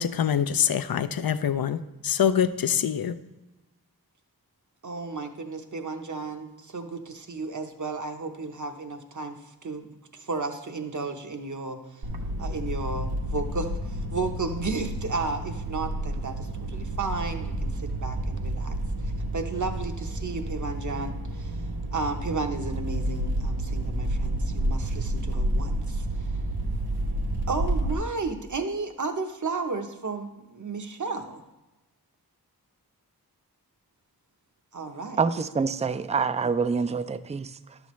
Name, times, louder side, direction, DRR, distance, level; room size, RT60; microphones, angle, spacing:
voice 1, 0.0-3.1, left 8 dB, 65° left, 13 dB, 0.5 m, -25 dB
voice 2, 4.8-9.4 9.6-12.0 12.4-18.7 19.0-26.3 27.5-31.4 34.7-35.2 36.4-36.5, right 3 dB, 50° right, 6 dB, 0.9 m, -33 dB
sound 1, 12.0-27.9, right 1 dB, 85° right, 0.9 m, -30 dB
voice 3, 35.2-37.8, right 5 dB, 20° right, 13 dB, 0.3 m, -26 dB
11.0 x 7.1 x 3.1 m, 1.0 s
wide cardioid pair, 45°, 38 cm